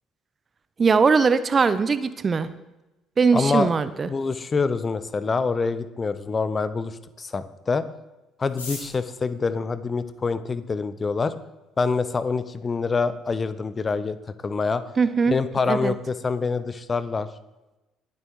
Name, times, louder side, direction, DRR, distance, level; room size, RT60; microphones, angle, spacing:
voice 1, 0.8-2.5 3.2-4.1 15.0-15.4 15.7-15.9, right 5 dB, 35° right, 14 dB, 0.6 m, -20 dB
voice 2, 3.3-3.7 4.1-7.8 8.4-11.3 11.8-14.2 14.4-14.8 15.3-17.3, left 4 dB, 30° left, 14 dB, 0.7 m, -26 dB
sound 1, 8.4-10.7 11.5-11.6 11.8-11.9 12.1-12.6 12.9-13.0 13.2-13.6 14.0-14.2 14.5-14.8, left 2 dB, 85° left, 3.7 m, -41 dB
19.5 x 7.8 x 3.0 m, 1.0 s
figure-of-eight pair, 50°, 0 cm